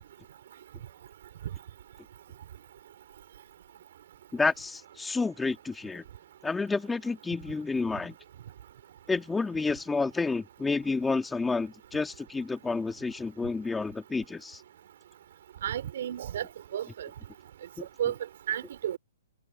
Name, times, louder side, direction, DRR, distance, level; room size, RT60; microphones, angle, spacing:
voice 1, 4.3-6.0 6.4-8.1 9.1-14.6 17.8-17.9, left 4 dB, 10° left, 2.1 m, -30 dB
voice 2, 15.6-17.1 18.0-18.1 18.5-19.0, right 10 dB, 65° right, 4.5 m, -32 dB
hypercardioid pair, 140°, 0 cm